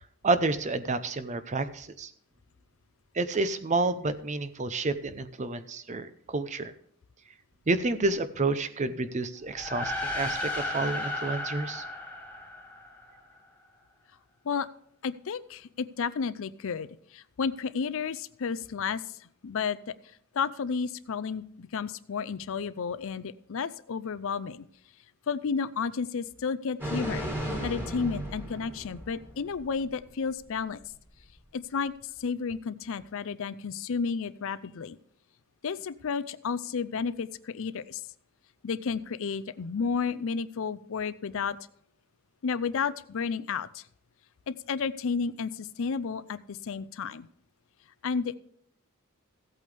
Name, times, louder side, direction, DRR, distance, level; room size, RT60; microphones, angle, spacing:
voice 1, 0.2-2.1 3.1-6.7 7.7-11.8, right 3 dB, 35° right, 12 dB, 0.7 m, -29 dB
sound 1, 9.5-13.2, left 1 dB, 5° left, 1.7 m, -34 dB
voice 2, 15.0-19.8 20.3-24.6 25.3-27.3 27.6-30.8 31.5-35.0 35.6-38.0 38.6-41.6 42.4-43.8 44.5-47.3 48.0-48.3, left 5 dB, 65° left, 16 dB, 0.5 m, -32 dB
sound 2, 26.8-29.7 30.0-30.1, equal, 10° right, 2.2 m, -35 dB
15.5 x 8.4 x 3.4 m, 0.65 s
head